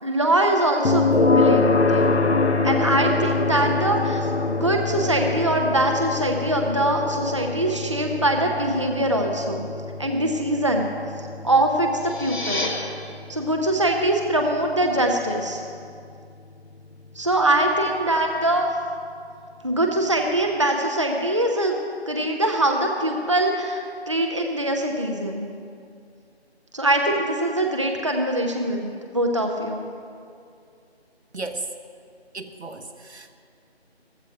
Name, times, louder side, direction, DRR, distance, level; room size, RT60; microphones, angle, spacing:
voice 1, 0.0-2.2 2.6-9.7 10.0-10.9 11.4-12.7 13.3-15.6 17.2-18.7 19.6-21.8 22.1-25.5 26.7-29.8, right 1 dB, 30° right, 2 dB, 0.7 m, -23 dB
sound 1, 0.8-15.8, left 3 dB, 80° left, 0.9 m, -25 dB
sound 2, 11.9-12.7, left 2 dB, 45° left, 2.1 m, -29 dB
voice 2, 31.3-31.6 32.3-33.3, right 3 dB, 80° right, 6 dB, 1.4 m, -34 dB
15.0 x 14.0 x 4.8 m, 2.4 s
figure-of-eight pair, 170°, 33 cm